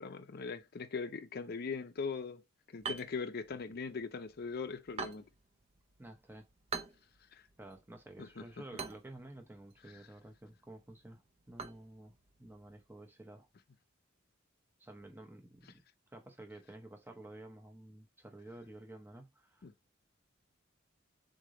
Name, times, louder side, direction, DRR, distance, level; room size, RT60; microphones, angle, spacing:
voice 1, 0.0-2.4 2.7-5.3 7.3-7.4 8.2-8.4 19.6-19.7, left 5 dB, 50° left, 0.5 m, -40 dB
sound 1, 2.8-12.9, right 5 dB, 30° right, 0.5 m, -48 dB
voice 2, 6.0-6.5 7.6-11.2 11.5-13.5 14.8-15.7 16.1-19.7, right 1 dB, 10° right, 0.8 m, -51 dB
3.8 x 3.3 x 3.8 m
head